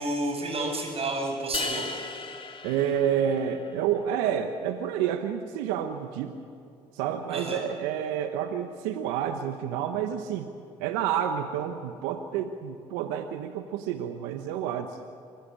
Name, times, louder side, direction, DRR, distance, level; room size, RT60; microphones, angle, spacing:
voice 1, 0.0-1.9 7.3-7.6, right 2 dB, 50° right, 3 dB, 8.0 m, -30 dB
sound 1, 1.5-3.8, left 3 dB, 40° left, 2.2 m, -36 dB
voice 2, 2.6-6.3 6.9-10.5 10.8-15.0, right 9 dB, 90° right, 7 dB, 1.1 m, -29 dB
25.0 x 17.5 x 8.7 m, 2.5 s
supercardioid pair, 60°, 13 cm